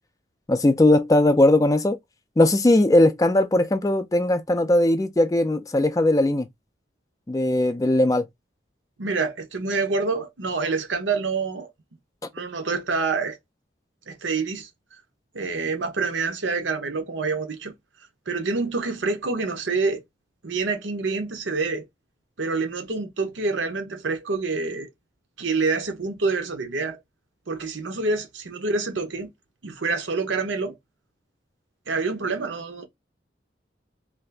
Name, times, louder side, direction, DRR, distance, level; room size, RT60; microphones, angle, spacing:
voice 1, 0.5-2.0 2.4-6.5 7.3-8.3, left 1 dB, 20° left, 0.3 m, -19 dB
voice 2, 9.0-11.7 12.3-13.4 14.1-14.7 15.3-17.7 18.3-20.0 20.4-21.9 22.4-24.9 25.4-27.0 27.5-29.3 29.6-30.8 31.9-32.9, right 4 dB, 85° right, 0.8 m, -27 dB
2.6 x 2.4 x 3.3 m
head